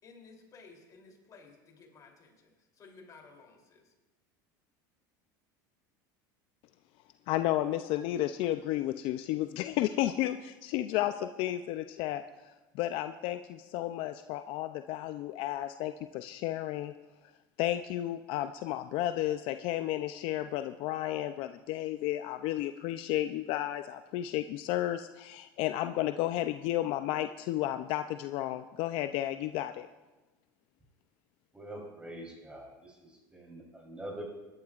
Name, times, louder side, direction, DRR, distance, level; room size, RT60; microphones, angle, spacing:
voice 1, 0.0-3.9, left 4 dB, 35° left, 0 dB, 3.1 m, -55 dB
voice 2, 7.3-16.9 17.6-29.9, left 14 dB, 60° left, 10 dB, 0.5 m, -32 dB
voice 3, 31.5-34.2, right 1 dB, 10° right, 0 dB, 3.5 m, -45 dB
23.0 x 12.0 x 2.4 m, 1.1 s
supercardioid pair, 110°, 11 cm